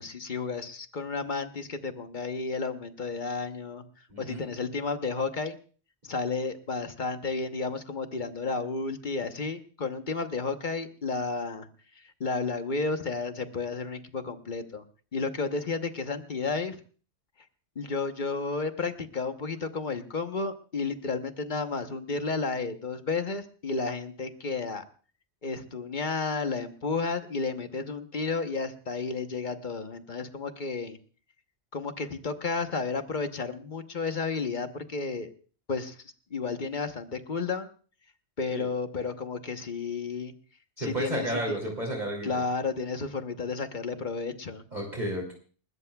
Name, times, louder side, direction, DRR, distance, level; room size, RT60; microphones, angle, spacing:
voice 1, 0.0-5.6 6.0-11.7 11.9-14.8 15.1-16.8 17.7-24.8 25.4-31.0 31.7-35.3 35.7-37.7 38.4-40.3 40.8-41.6 42.2-44.6, left 4 dB, 45° left, 8 dB, 1.2 m, -32 dB
voice 2, 40.8-42.3 44.7-45.3, right 1 dB, 40° right, 0 dB, 3.0 m, -32 dB
28.5 x 13.5 x 2.3 m, 0.40 s
omnidirectional pair, 1.1 m